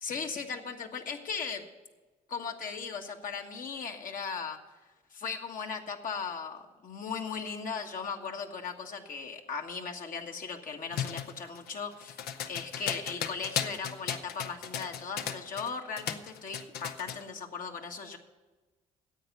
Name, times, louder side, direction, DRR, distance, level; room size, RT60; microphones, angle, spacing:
voice 1, 0.0-1.6 2.3-4.6 5.1-12.2 12.5-18.2, left 5 dB, 55° left, 3 dB, 1.6 m, -37 dB
sound 1, 10.9-15.7 16.0-17.2, left 9 dB, 75° left, 0.8 m, -36 dB
10.0 x 8.1 x 7.8 m, 1.2 s
supercardioid pair, 55°, 16 cm